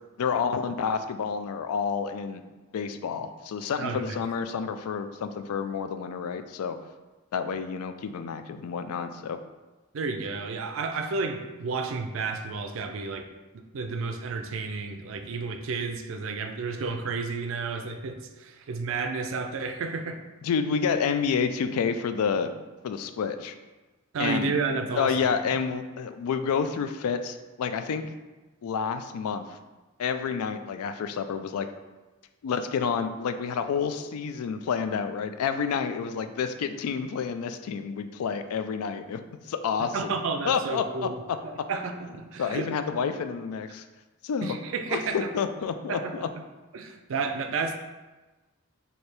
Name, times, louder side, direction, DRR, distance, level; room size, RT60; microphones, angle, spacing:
voice 1, 0.2-2.4 2.7-6.8 7.3-9.4 20.4-22.5 22.8-23.5 24.2-24.5 25.0-28.1 28.6-29.6 30.0-31.7 32.4-39.2 39.5-40.1 40.4-41.1 42.4-43.8 44.2-44.6 44.9-46.3, left 6 dB, 90° left, 9 dB, 0.3 m, -29 dB
voice 2, 3.8-4.2 9.9-13.3 13.5-20.2 24.1-25.3 39.9-41.1 41.4-42.7 44.4-45.3 45.9-46.2 46.7-47.8, right 4 dB, 65° right, 6 dB, 0.4 m, -31 dB
3.3 x 2.7 x 4.3 m, 1.2 s
head